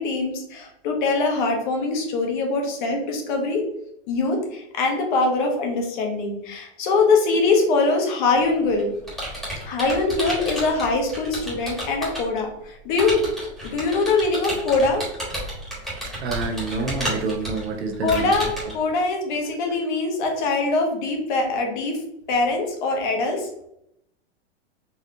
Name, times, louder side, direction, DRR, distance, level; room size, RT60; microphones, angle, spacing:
voice 1, 0.0-3.6 4.1-8.9 9.6-13.3 13.6-15.0 18.0-22.0 22.3-23.5, left 3 dB, 50° left, 2 dB, 1.1 m, -23 dB
Computer keyboard, 8.3-12.4 13.0-18.7, equal, ahead, 1.2 m, -32 dB
voice 2, 16.0-18.3, right 3 dB, 80° right, 5 dB, 0.8 m, -28 dB
4.0 x 2.9 x 2.5 m, 0.76 s
supercardioid pair, 145°, 32 cm